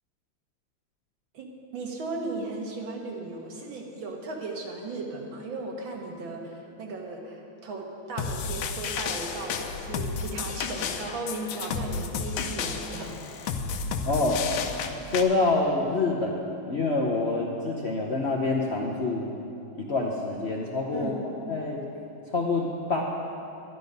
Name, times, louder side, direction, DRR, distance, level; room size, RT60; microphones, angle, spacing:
voice 1, 1.3-13.2 13.4-13.5 20.9-21.2, right 3 dB, 75° right, 1 dB, 2.1 m, -36 dB
sound 1, 8.2-15.2, left 5 dB, 80° left, 1.5 m, -32 dB
voice 2, 14.1-14.4 15.0-16.4 16.7-19.3 19.7-21.8 22.3-23.0, left 3 dB, 50° left, -2 dB, 0.8 m, -26 dB
11.5 x 11.0 x 5.3 m, 2.8 s
omnidirectional pair, 2.2 m